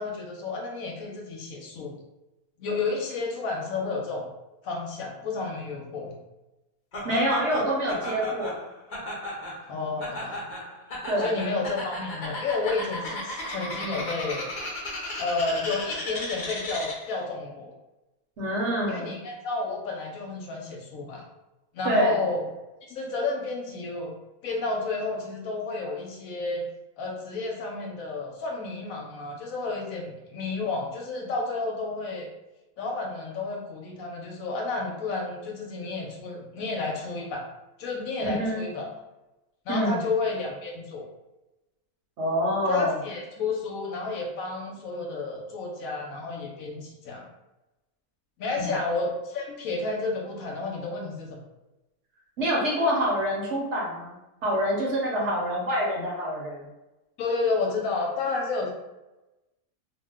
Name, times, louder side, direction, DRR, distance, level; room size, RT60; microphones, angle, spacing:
voice 1, 0.0-2.0 2.6-4.3 4.6-6.1 9.7-10.4 11.2-14.5 15.2-17.7 18.9-21.2 21.7-22.4 22.9-24.1 24.4-26.7 27.0-32.3 32.8-37.4 37.8-38.9 39.7-41.1 42.7-47.3 48.4-51.4 57.2-58.7, left 3 dB, 75° left, 0 dB, 1.0 m, -31 dB
Laughter, 6.9-17.2, left 1 dB, 45° left, 0.7 m, -35 dB
voice 2, 7.0-8.7 11.1-11.3 18.4-19.2 21.8-22.2 38.2-38.6 39.7-40.0 42.2-43.0 48.6-48.7 52.4-54.1 54.4-56.6, equal, 60° right, -3 dB, 0.9 m, -26 dB
2.6 x 2.1 x 3.5 m, 1.0 s
omnidirectional pair, 1.6 m